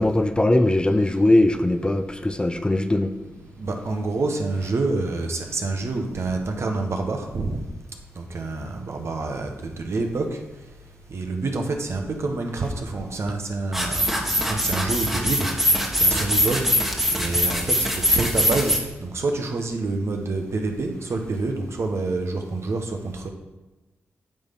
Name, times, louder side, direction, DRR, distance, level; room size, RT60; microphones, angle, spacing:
voice 1, 0.0-3.1, left 1 dB, 15° left, 9 dB, 0.6 m, -20 dB
voice 2, 3.4-7.6 8.2-10.4 11.1-15.5 15.9-16.6 17.1-23.3, right 3 dB, 60° right, 3 dB, 1.2 m, -27 dB
sound 1, 13.7-18.8, equal, 5° right, 1.5 m, -22 dB
8.9 x 3.6 x 5.8 m, 1.1 s
supercardioid pair, 50°, 5 cm